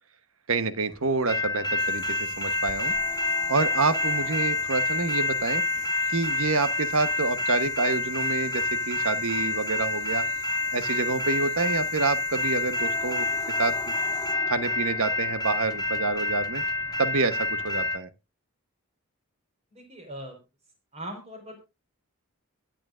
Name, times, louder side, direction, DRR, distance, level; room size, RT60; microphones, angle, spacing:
voice 1, 0.5-2.9 3.5-5.6 6.1-10.2 10.7-13.3 13.6-13.9 14.5-16.6 17.0-18.1, right 3 dB, 70° right, 11 dB, 1.1 m, -27 dB
sound 1, 1.3-18.0, left 3 dB, 15° left, 0.6 m, -28 dB
sound 2, 1.8-14.4, right 7 dB, 90° right, 1.8 m, -48 dB
voice 2, 19.7-20.4 20.9-21.6, right 1 dB, 30° right, 4 dB, 4.5 m, -40 dB
22.0 x 9.0 x 2.5 m, 0.27 s
head